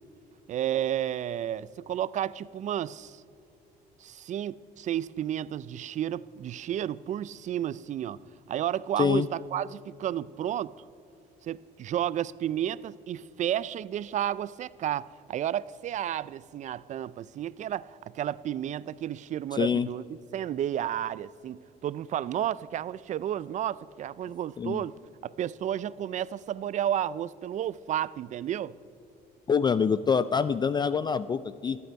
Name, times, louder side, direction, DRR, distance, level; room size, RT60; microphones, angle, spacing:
voice 1, 0.5-3.2 4.0-8.2 8.5-10.7 11.4-20.0 20.3-25.0 25.2-28.7, right 11 dB, 45° right, 0.4 m, -32 dB
voice 2, 9.0-9.3 19.5-19.9 24.6-24.8 29.5-31.8, left 6 dB, 25° left, 0.3 m, -25 dB
27.0 x 9.3 x 4.6 m
cardioid pair, 110°, 17 cm